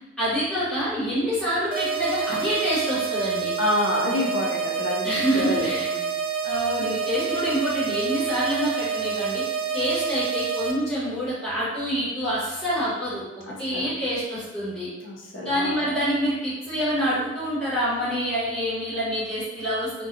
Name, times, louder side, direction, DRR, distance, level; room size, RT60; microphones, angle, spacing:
voice 1, 0.2-3.5 5.0-5.8 6.4-9.4 9.7-13.3 13.6-14.9 15.4-20.1, equal, 5° left, -13 dB, 1.2 m, -26 dB
sound 1, 1.7-10.7, right 7 dB, 45° right, 0.3 m, -28 dB
voice 2, 3.6-6.1 13.5-13.9 15.0-15.8, left 1 dB, 80° left, -2 dB, 0.6 m, -28 dB
2.6 x 2.2 x 2.6 m, 1.1 s
head